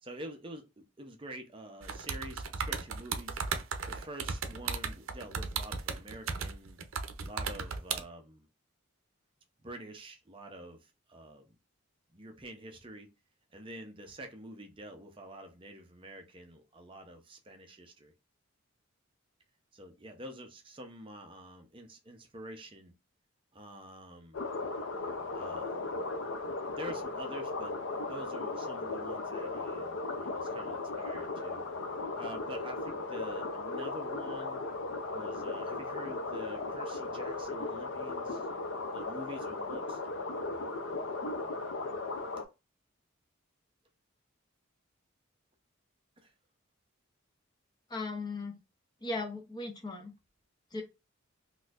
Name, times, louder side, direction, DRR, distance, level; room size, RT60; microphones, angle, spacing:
voice 1, 0.0-3.4 3.9-6.8 7.2-8.5 9.6-11.6 12.1-13.1 13.5-18.1 19.7-22.9 23.5-24.4 25.3-25.8 26.7-27.8 28.1-31.7 32.2-34.6 35.1-38.5 38.9-40.0 46.2-46.3, right 1 dB, 25° right, 0.6 m, -47 dB
sound 1, 1.8-8.0, right 5 dB, 80° right, 0.6 m, -35 dB
sound 2, 24.3-42.5, left 3 dB, 65° left, 0.5 m, -37 dB
voice 2, 47.9-48.6 49.0-50.1 50.7-50.8, left 3 dB, 20° left, 0.5 m, -37 dB
4.0 x 2.6 x 2.4 m
head